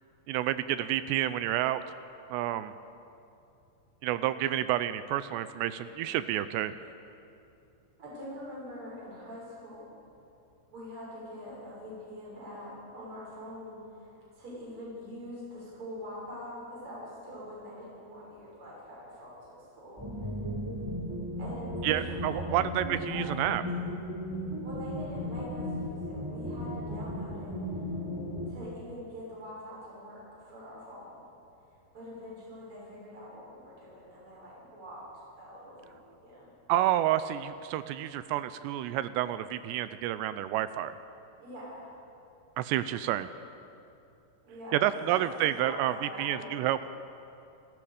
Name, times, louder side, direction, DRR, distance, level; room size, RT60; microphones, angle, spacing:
voice 1, 0.3-1.8 2.3-2.7 4.0-6.8 21.8-23.6 36.7-41.0 42.6-43.3 44.7-45.9 46.2-46.9, right 13 dB, 80° right, 13 dB, 2.7 m, -29 dB
voice 2, 8.0-9.9 10.7-20.0 21.4-23.9 24.6-27.6 28.5-31.2 31.9-35.0 35.4-36.0 36.2-36.5 41.4-41.9 44.4-44.9 45.1-45.3 45.6-46.5, equal, 30° right, -6 dB, 6.9 m, -44 dB
sound 1, 20.0-28.5, equal, 5° right, 2.4 m, -36 dB
28.0 x 18.5 x 5.1 m, 2.6 s
omnidirectional pair, 5.1 m